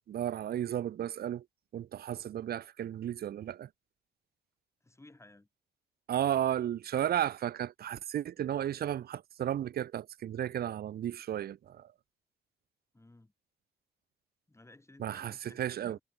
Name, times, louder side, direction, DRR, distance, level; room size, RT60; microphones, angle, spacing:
voice 1, 0.0-1.4 1.7-3.7 6.1-11.9 15.0-15.3 15.6-16.0, right 11 dB, 50° right, 0.5 m, -34 dB
voice 2, 4.8-5.5 12.9-13.3 14.5-16.0, left 2 dB, 15° left, 5.5 m, -56 dB
cardioid pair, 90°, 20 cm